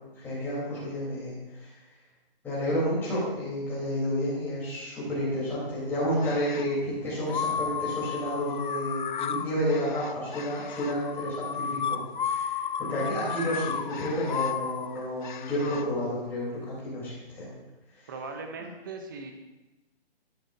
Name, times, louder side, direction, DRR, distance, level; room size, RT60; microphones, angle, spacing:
voice 1, 0.2-1.7 2.4-12.0 12.2-12.6 12.9-17.5, equal, 5° left, -9 dB, 3.6 m, -30 dB
sound 1, 6.2-6.8 7.3-15.9, left 7 dB, 50° left, 0.5 m, -33 dB
voice 2, 18.1-19.3, right 4 dB, 20° right, 4 dB, 0.7 m, -39 dB
12.0 x 9.5 x 2.7 m, 1.0 s
hypercardioid pair, 165°, 31 cm